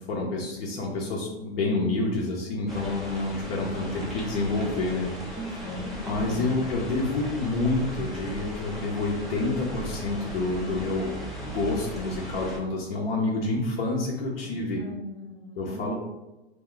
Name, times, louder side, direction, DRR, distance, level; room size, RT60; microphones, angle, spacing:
voice 1, 0.1-5.1 6.0-11.2 11.4-14.8 15.6-15.9, left 2 dB, 65° left, -2 dB, 0.7 m, -28 dB
sound 1, 2.7-12.6, equal, ahead, 0.3 m, -37 dB
voice 2, 5.3-6.5 14.4-15.9, left 1 dB, 40° left, 0 dB, 0.9 m, -39 dB
2.3 x 2.2 x 3.7 m, 1.1 s
hypercardioid pair, 125°, 32 cm